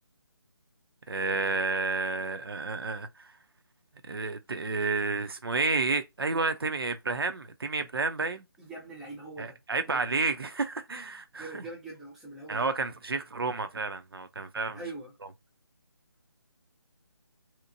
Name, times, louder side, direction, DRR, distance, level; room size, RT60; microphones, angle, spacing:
voice 1, 1.1-3.3 4.1-8.4 9.4-11.6 12.5-14.8, right 3 dB, 65° right, 0.5 m, -30 dB
voice 2, 8.6-9.6 9.9-10.1 10.9-11.0 11.4-12.6 14.7-15.1, right 2 dB, ahead, 0.5 m, -42 dB
2.9 x 2.1 x 2.5 m
figure-of-eight pair, 150°, 13 cm